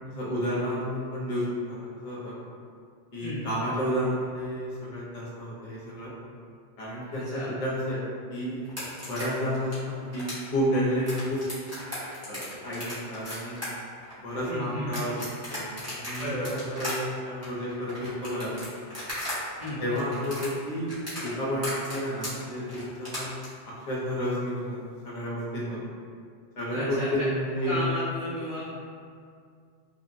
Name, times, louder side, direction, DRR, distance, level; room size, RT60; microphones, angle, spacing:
voice 1, 0.1-1.8 2.0-2.4 3.1-6.1 6.8-8.6 9.1-11.4 12.2-13.6 14.2-15.2 15.5-17.0 17.2-18.7 19.8-23.3 23.7-24.8 25.0-25.8 26.6-27.9, equal, 40° left, -6 dB, 0.6 m, -31 dB
voice 2, 7.1-7.5 14.4-14.9 16.2-16.6 19.6-19.8 26.7-27.1 27.6-28.7, equal, 55° right, -13 dB, 0.9 m, -33 dB
sound 1, 8.6-19.4 19.6-23.5, left 1 dB, 15° right, 0.8 m, -37 dB
2.8 x 2.0 x 2.6 m, 2.2 s
omnidirectional pair, 1.1 m